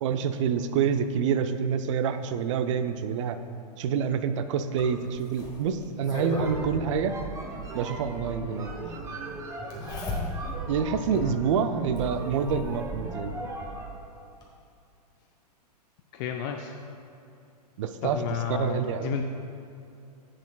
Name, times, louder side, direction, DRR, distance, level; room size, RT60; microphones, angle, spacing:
voice 1, 0.0-3.4 3.8-7.1 7.7-8.7 10.7-13.3 17.8-18.2 18.5-19.1, right 7 dB, 50° right, 10 dB, 0.5 m, -27 dB
Zipper (clothing), 4.8-6.6 8.0-8.1 9.7-10.7 11.2-11.3 11.9-12.8 14.0-14.1 14.4-14.5, left 3 dB, 20° left, 1.3 m, -35 dB
sound 1, 6.2-14.0, right 2 dB, 15° right, 0.7 m, -38 dB
voice 2, 16.1-16.7 18.0-19.2, left 8 dB, 35° left, 3 dB, 0.4 m, -32 dB
10.5 x 7.6 x 2.3 m, 2.6 s
figure-of-eight pair, 110°, 21 cm